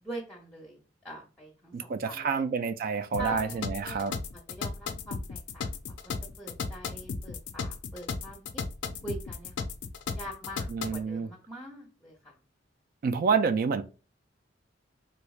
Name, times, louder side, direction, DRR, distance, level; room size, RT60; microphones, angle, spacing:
voice 1, 0.0-2.5 3.2-4.2 4.5-8.6 9.0-9.7 10.1-12.3, right 1 dB, 5° left, 0.7 m, -43 dB
voice 2, 1.7-4.1 10.7-11.3 13.0-13.8, right 5 dB, 50° right, 0.3 m, -28 dB
sound 1, 3.1-11.0, left 5 dB, 75° left, 0.4 m, -35 dB
3.4 x 3.1 x 2.3 m
head